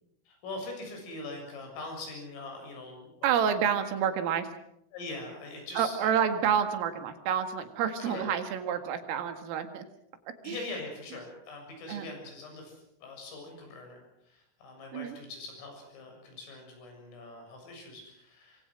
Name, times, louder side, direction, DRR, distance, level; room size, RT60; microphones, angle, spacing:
voice 1, 0.3-3.5 4.9-6.1 8.0-8.3 10.4-18.7, left 2 dB, 75° left, 3 dB, 9.8 m, -42 dB
voice 2, 3.2-4.5 5.8-9.9 10.4-10.6 11.9-12.1 14.9-15.2, right 8 dB, 80° right, 8 dB, 4.5 m, -29 dB
26.0 x 24.0 x 6.3 m, 0.77 s
omnidirectional pair, 5.9 m